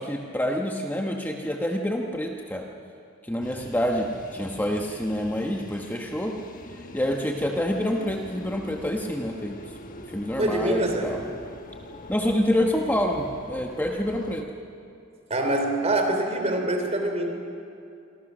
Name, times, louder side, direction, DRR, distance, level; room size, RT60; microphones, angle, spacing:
voice 1, 0.0-2.6 3.3-6.3 6.9-9.6 10.1-11.2 12.1-14.4, equal, 10° left, 1 dB, 1.2 m, -27 dB
sound 1, 3.4-14.4, left 1 dB, 40° left, 1.3 m, -44 dB
voice 2, 10.4-11.1 15.3-17.3, right 1 dB, 30° right, 4 dB, 3.3 m, -25 dB
27.5 x 24.5 x 6.3 m, 2.5 s
head